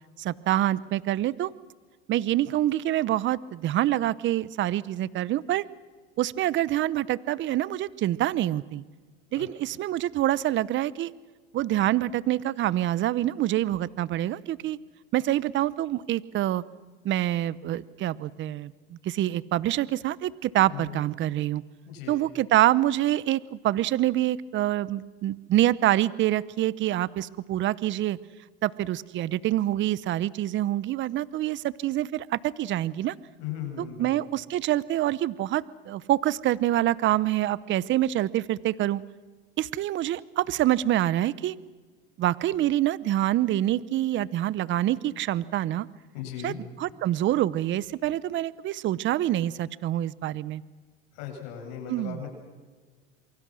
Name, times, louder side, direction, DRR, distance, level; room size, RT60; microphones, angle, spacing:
voice 1, 0.2-1.5 2.1-5.6 6.2-8.8 9.3-11.1 11.5-14.8 15.1-16.6 17.0-21.6 22.1-28.2 28.6-33.1 33.8-39.0 39.6-41.5 42.2-45.9 46.4-50.6 51.9-52.2, right 13 dB, 40° right, 20 dB, 0.8 m, -26 dB
voice 2, 20.7-21.0 21.9-22.2 33.4-34.1 46.1-46.6 51.1-52.3, left 9 dB, 65° left, 3 dB, 7.9 m, -37 dB
27.5 x 24.0 x 6.3 m, 1.4 s
supercardioid pair, 110°, 31 cm